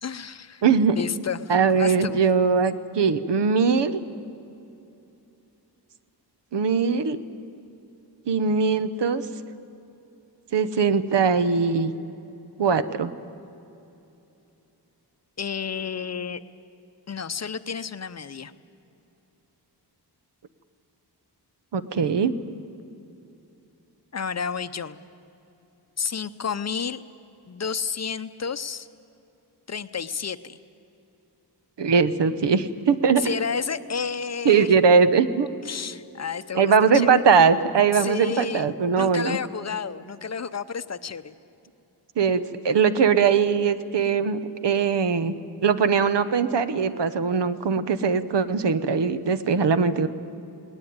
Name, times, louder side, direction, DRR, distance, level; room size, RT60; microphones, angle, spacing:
voice 1, 0.0-0.6 1.0-2.2 15.4-16.4 17.1-18.5 24.1-25.0 26.0-27.0 27.5-28.9 29.7-30.6 33.2-34.8 35.6-37.2 37.9-41.3, left 6 dB, 40° left, 12 dB, 0.6 m, -31 dB
voice 2, 0.6-1.0 1.5-4.0 6.5-7.2 8.3-9.2 10.5-11.9 12.6-13.1 21.7-22.3 31.8-33.2 34.4-35.5 36.5-39.4 42.2-45.3 45.6-50.1, right 5 dB, 80° right, 12 dB, 1.1 m, -21 dB
19.5 x 19.0 x 9.5 m, 2.8 s
wide cardioid pair, 160°, 41 cm